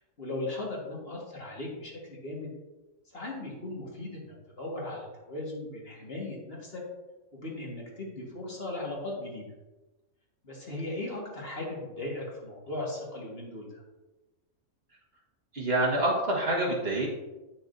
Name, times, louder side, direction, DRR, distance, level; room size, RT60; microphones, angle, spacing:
voice 1, 0.2-2.5 3.1-6.8 7.3-9.5 10.4-13.8, left 2 dB, 45° left, -3 dB, 1.8 m, -37 dB
voice 2, 15.5-17.1, right 1 dB, 45° right, -4 dB, 1.8 m, -26 dB
9.7 x 6.4 x 2.6 m, 1.1 s
omnidirectional pair, 1.5 m